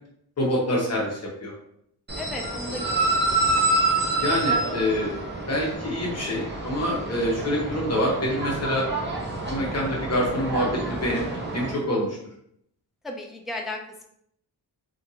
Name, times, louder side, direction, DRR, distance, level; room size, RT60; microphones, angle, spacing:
voice 1, 0.4-1.5 2.7-2.8 4.2-5.1 5.5-8.9 9.5-11.2 11.5-12.2, left 1 dB, 40° left, -3 dB, 0.8 m, -26 dB
sound 1, 2.1-11.7, right 2 dB, 25° right, 0.8 m, -27 dB
voice 2, 2.2-3.3 13.0-14.1, left 2 dB, ahead, 1 dB, 0.3 m, -35 dB
2.8 x 2.5 x 2.7 m, 0.72 s
wide cardioid pair, 110°, 41 cm